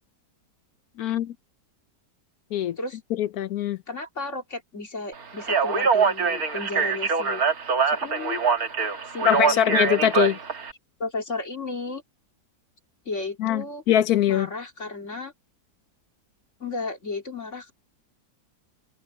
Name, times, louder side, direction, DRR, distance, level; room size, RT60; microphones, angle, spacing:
voice 1, 1.0-1.3 2.5-2.8 3.1-3.8 9.2-10.4 13.4-14.5, left 11 dB, 70° left, 1.1 m, -22 dB
voice 2, 3.9-7.4 7.9-8.4 9.1-9.7 11.0-12.0 13.0-13.8 14.3-15.3 16.6-17.7, left 3 dB, 45° left, 2.8 m, -33 dB
Speech, 5.4-10.7, right 5 dB, 60° right, 2.2 m, -24 dB
omnidirectional pair, 1.8 m